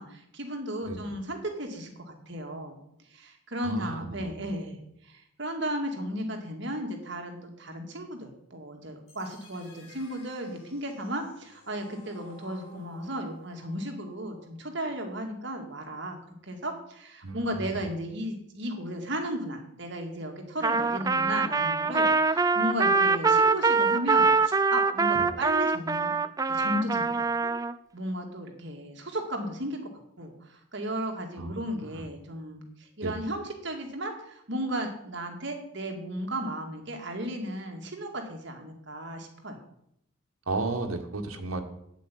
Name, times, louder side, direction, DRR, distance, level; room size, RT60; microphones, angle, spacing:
voice 1, 0.0-2.8 3.1-4.8 5.0-16.2 16.5-26.1 26.5-27.2 27.4-27.5 27.9-29.8 30.2-39.6, right 1 dB, 55° right, 3 dB, 2.2 m, -35 dB
voice 2, 3.6-4.3 17.2-17.8 25.1-25.3 31.4-32.0 33.0-33.2 40.5-41.6, right 3 dB, 80° right, 4 dB, 1.6 m, -34 dB
sound 1, 9.1-15.1, left 1 dB, 70° left, 4.0 m, -54 dB
Trumpet, 20.6-27.7, right 4 dB, 15° right, 0.4 m, -24 dB
8.8 x 8.3 x 8.6 m, 0.76 s
head